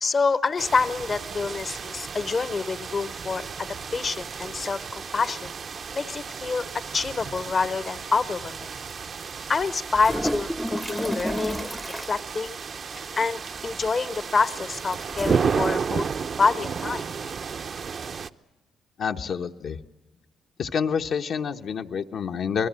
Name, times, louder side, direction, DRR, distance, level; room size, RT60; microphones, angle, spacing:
voice 1, 0.0-5.5 5.9-6.6 6.9-8.7 9.5-11.7 11.9-12.6 13.0-16.1 16.4-17.0, left 4 dB, 40° left, 13 dB, 0.8 m, -27 dB
sound 1, 0.6-18.3, right 6 dB, 50° right, 0.7 m, -33 dB
sound 2, 9.9-12.2 13.5-13.9 15.1-15.4, equal, ahead, 0.7 m, -30 dB
voice 2, 19.0-19.8 20.6-22.7, left 6 dB, 65° left, 4 dB, 1.0 m, -28 dB
28.0 x 19.5 x 7.5 m, 1.1 s
cardioid pair, 90°, 0 cm